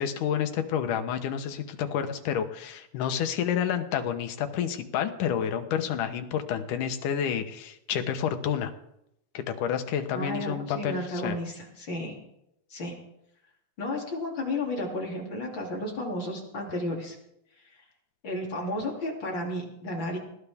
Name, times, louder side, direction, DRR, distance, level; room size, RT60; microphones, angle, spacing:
voice 1, 0.0-8.7 9.3-11.4, left 8 dB, 85° left, 7 dB, 2.6 m, -29 dB
voice 2, 10.1-12.1 12.7-12.9 13.8-17.2 18.2-20.2, left 1 dB, 40° left, -1 dB, 3.4 m, -32 dB
20.0 x 16.5 x 3.6 m, 0.80 s
omnidirectional pair, 3.5 m